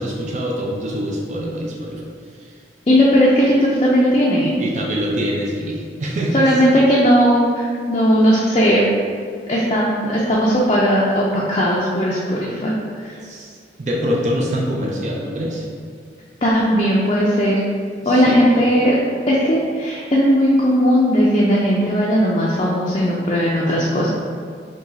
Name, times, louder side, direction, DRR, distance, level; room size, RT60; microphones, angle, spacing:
voice 1, 0.0-2.1 2.4-2.5 4.6-6.5 13.2-15.7 18.0-18.4, equal, 40° right, -2 dB, 0.5 m, -24 dB
voice 2, 2.9-4.6 6.3-8.8 9.5-12.8 13.0-13.1 16.4-17.6 18.1-18.9 19.3-24.1, equal, 30° left, -5 dB, 0.4 m, -17 dB
4.8 x 2.3 x 4.0 m, 2.1 s
head